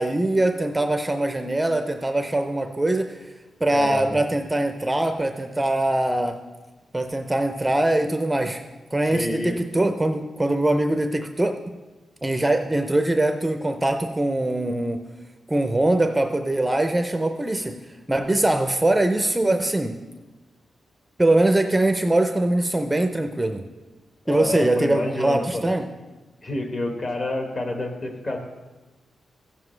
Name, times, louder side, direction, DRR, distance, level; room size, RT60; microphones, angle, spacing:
voice 1, 0.0-3.3 3.6-6.4 6.9-8.6 8.9-11.6 12.2-15.0 15.5-17.8 18.1-20.0 21.2-23.6 24.3-25.9, right 1 dB, 10° right, 6 dB, 0.4 m, -22 dB
voice 2, 3.7-4.1 9.1-9.6 24.2-25.6 26.4-28.4, left 1 dB, 40° left, 3 dB, 1.3 m, -28 dB
15.0 x 7.0 x 3.2 m, 1.2 s
wide cardioid pair, 140°, 0 cm